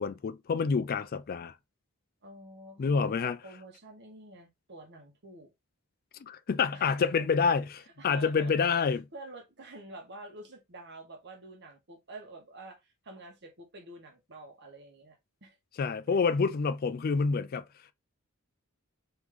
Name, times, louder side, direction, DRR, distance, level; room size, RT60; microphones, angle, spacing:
voice 1, 0.0-1.5 2.8-3.4 6.2-9.0 15.8-17.6, left 5 dB, 40° left, 0.3 m, -28 dB
voice 2, 2.2-5.5 6.7-7.3 7.8-8.8 9.1-15.6 16.1-16.2, right 2 dB, 50° right, 1.3 m, -48 dB
3.4 x 3.0 x 3.6 m
head